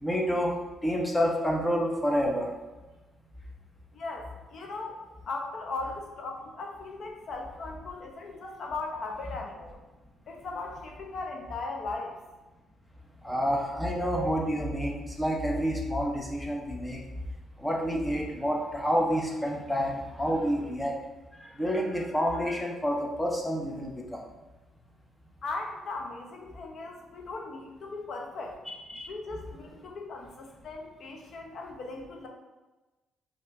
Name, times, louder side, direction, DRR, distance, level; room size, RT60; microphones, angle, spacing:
voice 1, 0.0-0.6 0.8-2.5 8.4-8.5 13.2-17.0 17.6-20.9 21.3-24.2 28.7-29.1, equal, 10° left, -1 dB, 0.8 m, -29 dB
voice 2, 3.9-5.0 5.3-9.8 10.3-12.1 25.4-28.6 29.1-32.3, left 3 dB, 60° left, 1 dB, 0.8 m, -38 dB
5.3 x 2.9 x 2.6 m, 1.1 s
cardioid pair, 90°, 0 cm